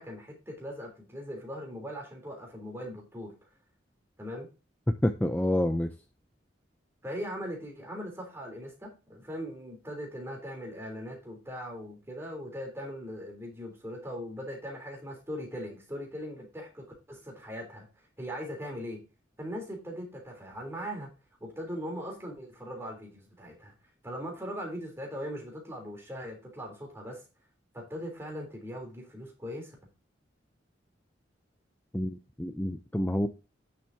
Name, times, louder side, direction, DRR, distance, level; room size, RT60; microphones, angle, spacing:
voice 1, 0.0-3.4 4.2-4.5 7.0-19.0 19.4-21.1 21.4-23.7 24.0-27.2 27.7-29.8, equal, 15° right, 3.5 m, -40 dB
voice 2, 5.0-5.9 31.9-33.3, left 1 dB, 10° left, 0.5 m, -28 dB
10.0 x 7.6 x 2.8 m
head